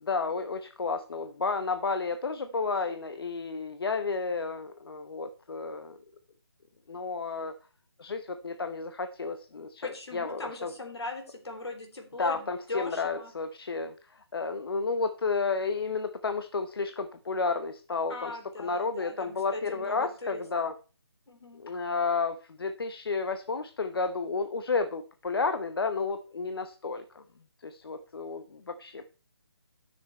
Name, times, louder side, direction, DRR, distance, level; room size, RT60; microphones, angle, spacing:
voice 1, 0.0-6.0 6.9-7.5 8.0-10.7 12.2-20.7 21.6-27.2 27.6-29.0, left 4 dB, 60° left, 8 dB, 0.8 m, -32 dB
voice 2, 9.8-13.3 18.1-20.4 21.3-21.6, left 2 dB, 80° left, 3 dB, 3.8 m, -39 dB
12.5 x 6.4 x 4.3 m, 0.36 s
figure-of-eight pair, 165°, 14 cm